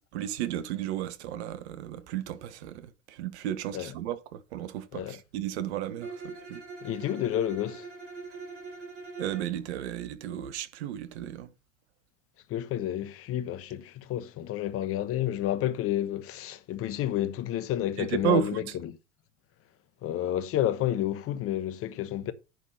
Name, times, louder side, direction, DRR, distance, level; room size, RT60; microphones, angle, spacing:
voice 1, 0.1-6.6 9.2-11.5 18.0-18.6, right 11 dB, 60° right, 1.2 m, -33 dB
Bowed string instrument, 6.0-9.6, right 4 dB, 75° right, 6.0 m, -42 dB
voice 2, 6.8-7.9 12.5-19.0 20.0-22.3, left 12 dB, 40° left, 1.1 m, -30 dB
10.5 x 4.0 x 5.6 m
figure-of-eight pair, 80°, 37 cm